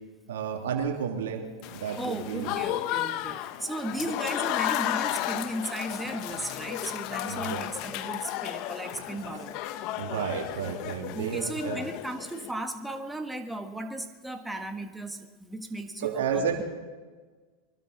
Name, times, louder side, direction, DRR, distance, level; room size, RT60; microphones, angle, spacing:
voice 1, 0.3-2.5 7.3-7.6 10.0-11.8 16.0-16.6, right 7 dB, 80° right, 1 dB, 2.8 m, -31 dB
Applause / Crowd, 1.6-12.5, left 13 dB, 55° left, 0.9 m, -33 dB
voice 2, 2.0-9.6 11.1-16.5, right 1 dB, 5° right, 5 dB, 1.6 m, -36 dB
23.5 x 12.5 x 4.2 m, 1.4 s
hypercardioid pair, 100°, 0 cm